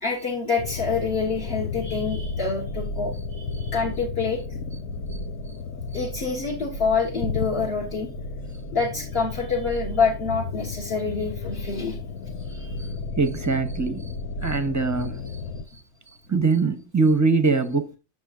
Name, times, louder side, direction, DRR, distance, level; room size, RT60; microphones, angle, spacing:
voice 1, 0.0-4.4 5.9-8.1 8.7-12.0 12.5-12.8, left 4 dB, 50° left, 1.6 m, -27 dB
sound 1, 0.6-15.6, left 4 dB, 85° left, 1.1 m, -33 dB
voice 2, 13.2-14.1 14.4-15.2 16.3-18.0, right 4 dB, 15° right, 0.6 m, -22 dB
8.9 x 6.3 x 2.4 m
omnidirectional pair, 1.4 m